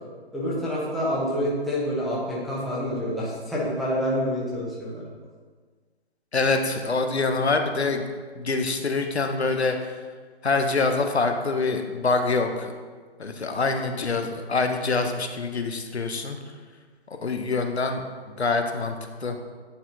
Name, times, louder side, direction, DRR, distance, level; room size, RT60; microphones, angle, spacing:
voice 1, 0.3-5.0, equal, ahead, -8 dB, 1.0 m, -27 dB
voice 2, 6.3-8.0 8.4-9.9 10.4-12.7 13.2-16.4 17.2-18.9 19.2-19.4, left 3 dB, 90° left, 5 dB, 0.9 m, -25 dB
9.6 x 4.3 x 2.8 m, 1.5 s
figure-of-eight pair, 135°, 32 cm